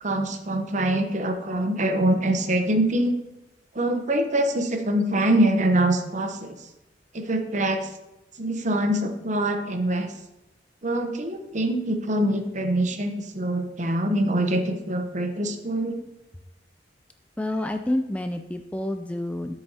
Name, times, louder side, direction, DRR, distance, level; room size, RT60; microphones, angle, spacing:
voice 1, 0.0-3.1 3.7-6.6 7.1-7.9 8.4-10.1 10.8-16.0, right 1 dB, 40° right, 6 dB, 0.9 m, -24 dB
voice 2, 17.4-19.5, left 1 dB, 5° left, 6 dB, 0.3 m, -28 dB
9.9 x 8.0 x 2.8 m, 0.97 s
head